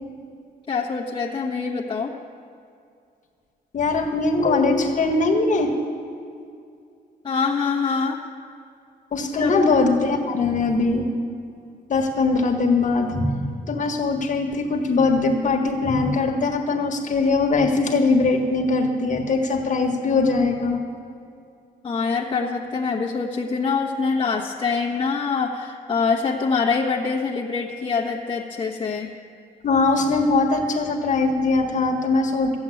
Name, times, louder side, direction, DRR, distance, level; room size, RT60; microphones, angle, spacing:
voice 1, 0.7-2.1 7.2-8.2 9.4-9.5 21.8-29.1, left 5 dB, 30° left, -4 dB, 1.3 m, -24 dB
voice 2, 3.7-5.7 9.1-11.0 11.9-20.8 29.6-32.6, left 3 dB, 50° left, 2 dB, 1.6 m, -21 dB
14.5 x 7.8 x 8.5 m, 2.4 s
cardioid pair, 125°, 17 cm